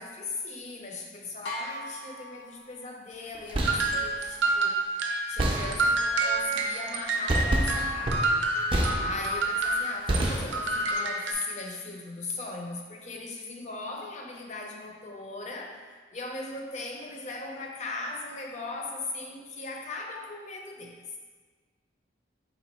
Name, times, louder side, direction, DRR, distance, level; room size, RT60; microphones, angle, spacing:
voice 1, 0.0-4.8 5.3-8.3 9.0-15.8 16.1-21.2, left 3 dB, 40° left, 0 dB, 0.5 m, -38 dB
sound 1, 1.4-3.2, left 1 dB, 75° left, 0.7 m, -39 dB
sound 2, 3.3-4.0 5.4-6.1 7.3-9.5 10.1-10.9, right 1 dB, 30° right, 0.4 m, -28 dB
sound 3, 3.6-10.2 10.5-11.3, right 2 dB, 80° right, 0.5 m, -28 dB
4.1 x 2.6 x 4.2 m, 1.5 s
head